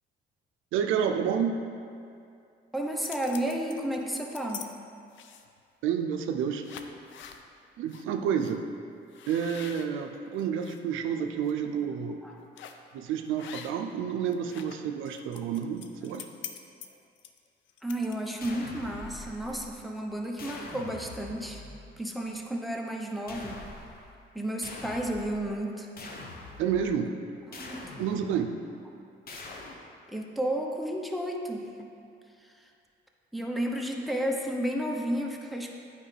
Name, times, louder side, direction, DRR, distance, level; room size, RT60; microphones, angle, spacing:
voice 1, 0.7-1.6 5.8-6.6 7.8-8.7 9.3-12.2 12.9-16.3 26.6-27.2 28.0-28.6, right 7 dB, 85° right, 5 dB, 0.5 m, -29 dB
sound 1, 2.7-4.7 5.1-5.6 6.2-6.3 6.6-7.4 7.9-8.0 8.4-8.6 9.1-10.8 11.3-11.5 12.6-12.9 13.4-14.0 14.3-18.7, left 8 dB, 75° left, 0.5 m, -45 dB
voice 2, 2.7-4.7 12.2-12.3 17.8-21.6 22.0-23.6 24.3-25.9 27.6-28.1 29.7-29.8 30.1-31.9 32.4-32.7 33.3-35.7, right 1 dB, ahead, 1 dB, 0.8 m, -32 dB
sound 2, 18.4-20.0 20.4-22.0 23.3-24.2 24.6-25.6 26.0-26.9 27.5-28.5 29.3-29.8, left 2 dB, 50° left, 0.9 m, -44 dB
8.7 x 5.1 x 3.3 m, 2.5 s
cardioid pair, 90°, 20 cm